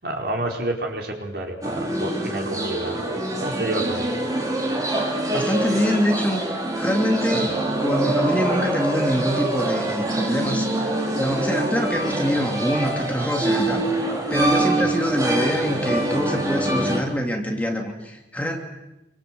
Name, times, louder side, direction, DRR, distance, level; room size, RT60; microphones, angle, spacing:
voice 1, 0.0-3.1 3.4-4.1 7.3-7.5 14.8-14.9, right 1 dB, 55° right, 1 dB, 5.0 m, -29 dB
sound 1, 1.6-17.0, right 1 dB, 20° right, 4.1 m, -25 dB
voice 2, 5.3-6.4 6.7-18.6, equal, 10° left, 2 dB, 2.9 m, -25 dB
27.5 x 25.0 x 7.9 m, 0.93 s
head